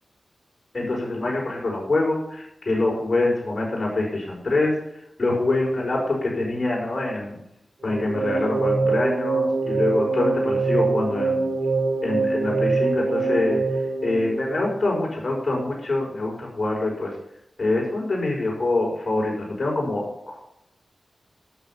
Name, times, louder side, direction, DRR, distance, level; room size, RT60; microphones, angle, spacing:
voice 1, 0.7-4.7 5.2-7.4 7.8-11.4 12.0-13.6 14.0-17.1 17.6-20.0, left 2 dB, 50° left, -3 dB, 5.3 m, -25 dB
sound 1, 7.8-15.0, right 3 dB, 80° right, 2.4 m, -24 dB
10.5 x 7.2 x 5.8 m, 0.80 s
cardioid pair, 55°, 0 cm